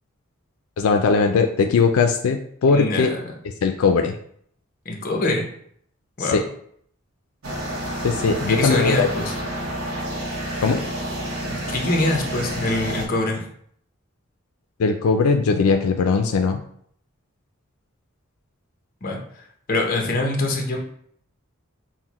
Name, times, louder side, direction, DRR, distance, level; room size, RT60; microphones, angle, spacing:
voice 1, 0.8-3.1 3.6-4.1 6.2-6.4 8.0-9.1 10.6-10.8 14.8-16.6, left 4 dB, 85° left, 5 dB, 0.4 m, -19 dB
voice 2, 2.7-3.2 4.9-5.5 6.2-6.4 8.5-9.3 11.5-13.4 19.0-19.4 19.7-20.8, left 2 dB, 45° left, 1 dB, 0.7 m, -24 dB
sound 1, 7.4-13.1, right 1 dB, 85° right, 0.9 m, -29 dB
5.7 x 2.1 x 2.9 m, 0.64 s
head